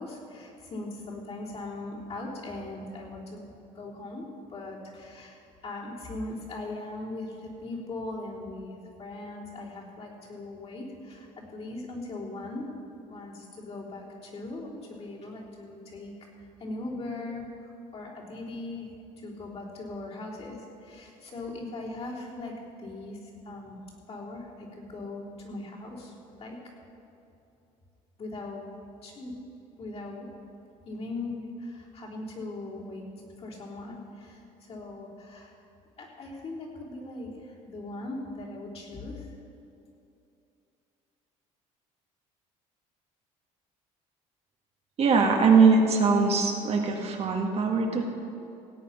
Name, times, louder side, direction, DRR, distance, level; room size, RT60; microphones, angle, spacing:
voice 1, 0.0-3.5 3.8-12.7 13.1-16.1 16.4-18.9 19.2-22.5 22.8-23.8 24.1-26.6 28.2-28.6 29.0-29.3 29.8-30.3 30.9-35.5 36.0-39.3, left 2 dB, 45° left, -4 dB, 3.5 m, -39 dB
voice 2, 45.0-48.0, right 4 dB, 45° right, 2 dB, 1.6 m, -21 dB
17.0 x 8.4 x 5.8 m, 2.7 s
cardioid pair, 105°, 15 cm